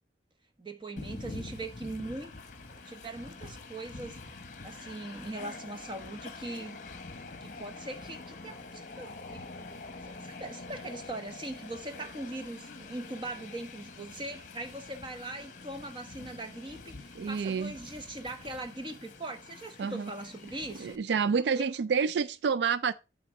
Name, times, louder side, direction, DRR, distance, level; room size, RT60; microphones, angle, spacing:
voice 1, 0.6-2.3 2.7-4.4 4.6-6.8 7.4-21.0 21.6-21.7, right 2 dB, 25° right, 1.1 m, -41 dB
Train, 1.0-21.0, left 3 dB, 45° left, 1.0 m, -46 dB
voice 2, 17.2-17.7 19.8-20.1 20.8-22.9, right 6 dB, 70° right, 0.3 m, -28 dB
8.5 x 3.9 x 6.2 m
head